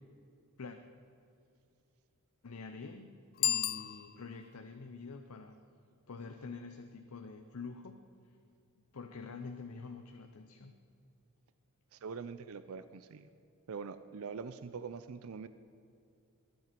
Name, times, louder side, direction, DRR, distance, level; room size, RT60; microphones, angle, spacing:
voice 1, 2.4-5.6 6.1-8.0 8.9-10.8, left 4 dB, 80° left, 6 dB, 0.7 m, -46 dB
Bicycle bell, 3.3-4.6, left 12 dB, 45° left, 0.4 m, -34 dB
voice 2, 11.9-13.3 13.7-15.5, right 5 dB, 70° right, 12 dB, 0.5 m, -43 dB
21.5 x 9.5 x 5.2 m, 2.6 s
head